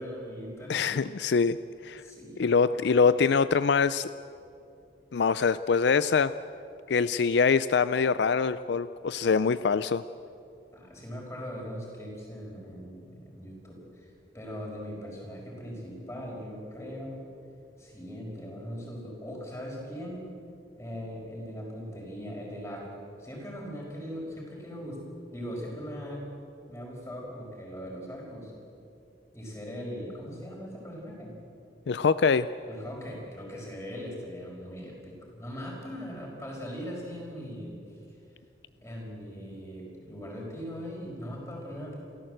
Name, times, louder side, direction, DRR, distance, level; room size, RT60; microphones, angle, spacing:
voice 1, 0.0-0.9 2.0-2.4 2.7-2.8 10.7-17.3 17.8-20.3 20.8-25.0 25.3-26.3 26.7-28.5 29.3-31.3 32.7-37.8 38.8-42.0, equal, 15° left, -1 dB, 5.0 m, -40 dB
voice 2, 0.7-1.6 1.8-2.0 2.4-4.1 5.1-6.3 6.9-10.0 31.9-32.5, left 5 dB, 70° left, 15 dB, 0.4 m, -24 dB
28.5 x 14.0 x 7.8 m, 2.6 s
head